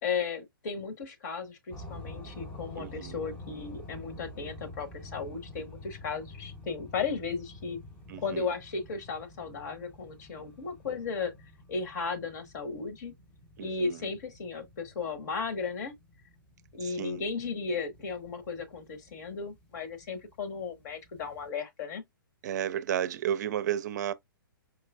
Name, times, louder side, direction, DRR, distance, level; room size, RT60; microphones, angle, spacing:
voice 1, 0.0-7.8 8.2-11.3 11.7-13.1 13.6-15.9 16.7-22.0, left 5 dB, 50° left, 1.2 m, -35 dB
sound 1, 1.7-21.5, left 2 dB, 10° left, 0.7 m, -49 dB
voice 2, 2.8-3.2 8.1-8.5 13.6-14.0 16.8-17.2 22.4-24.1, right 10 dB, 50° right, 0.5 m, -32 dB
4.8 x 3.0 x 2.3 m
hypercardioid pair, 130°, 12 cm